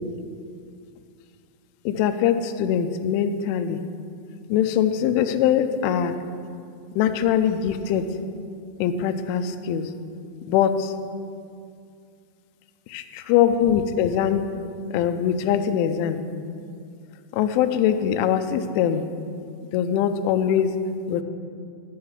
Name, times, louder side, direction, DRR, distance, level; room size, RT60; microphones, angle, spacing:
voice 1, 1.9-3.8 4.5-6.1 7.0-8.1 8.8-9.9 10.5-10.9 12.9-14.5 14.9-16.2 17.3-19.0 19.7-20.8 21.1-21.2, left 9 dB, 85° left, 8 dB, 3.0 m, -22 dB
12.0 x 5.6 x 7.1 m, 2.4 s
omnidirectional pair, 5.5 m